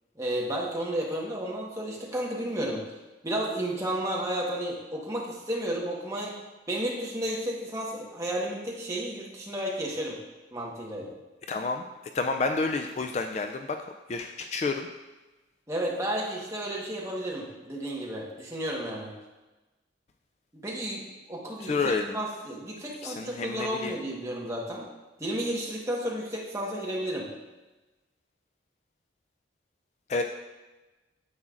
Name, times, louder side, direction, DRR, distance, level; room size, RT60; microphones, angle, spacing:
voice 1, 0.2-2.8 3.2-6.4 6.7-10.2 10.5-11.1 15.7-19.1 20.5-21.0 21.3-24.9 25.2-27.3, right 1 dB, 15° right, -3 dB, 1.2 m, -32 dB
voice 2, 11.5-11.8 12.1-13.7 14.1-14.9 21.6-22.2 23.0-24.0 30.1-30.2, left 3 dB, 35° left, 5 dB, 0.3 m, -29 dB
9.6 x 7.3 x 2.5 m, 1.1 s
head